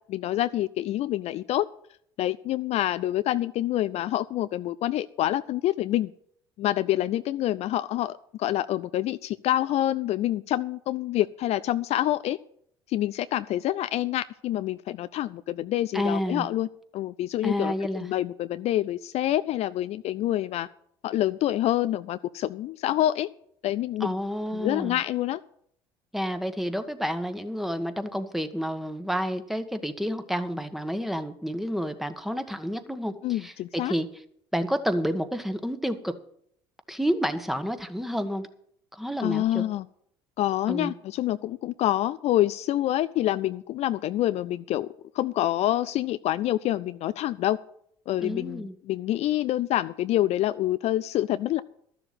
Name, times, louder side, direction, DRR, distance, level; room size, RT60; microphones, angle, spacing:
voice 1, 0.1-1.7 2.2-6.1 6.6-12.4 12.9-16.7 16.9-17.7 18.0-20.7 21.0-23.3 23.6-24.1 24.5-25.4 33.2-33.9 39.2-39.9 40.4-44.9 45.1-47.6 48.1-51.6, left 13 dB, 55° left, 14 dB, 0.4 m, -27 dB
voice 2, 15.9-16.5 17.4-18.1 24.0-25.0 26.1-34.1 34.5-36.2 36.9-38.5 38.9-39.7 40.7-40.9 48.2-48.7, equal, ahead, 9 dB, 1.4 m, -30 dB
13.0 x 7.1 x 7.5 m, 0.67 s
hypercardioid pair, 65°, 13 cm